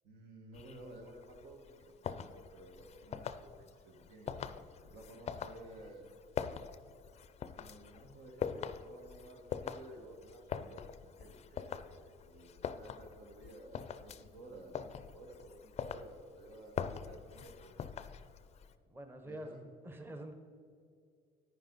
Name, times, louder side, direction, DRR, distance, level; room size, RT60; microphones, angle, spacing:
voice 1, 0.0-6.2 7.5-18.0 19.2-19.6, right 1 dB, 80° right, 2 dB, 1.8 m, -54 dB
sound 1, 0.5-18.7, left 7 dB, 40° left, 0.4 m, -44 dB
voice 2, 18.9-20.3, right 1 dB, 15° right, 6 dB, 0.8 m, -46 dB
10.0 x 9.4 x 4.0 m, 2.4 s
cardioid pair, 110°, 17 cm